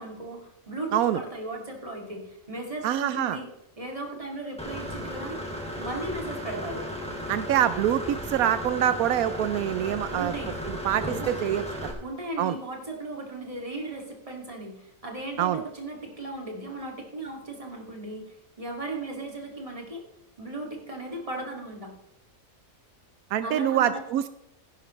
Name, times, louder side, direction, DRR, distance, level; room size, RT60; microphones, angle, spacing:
voice 1, 0.0-3.5 3.8-5.4 5.8-6.9 10.1-10.5 11.0-11.3 12.0-20.0 20.4-21.9 23.4-24.0, right 2 dB, 25° right, 0 dB, 2.4 m, -36 dB
voice 2, 2.8-3.4 7.3-10.3 10.6-11.9 12.4-12.6 15.4-15.6 23.3-24.3, right 11 dB, 85° right, 12 dB, 1.0 m, -25 dB
Engine / Mechanisms, 4.6-11.9, equal, 5° left, 2.3 m, -35 dB
15.5 x 11.0 x 3.2 m, 0.88 s
omnidirectional pair, 1.5 m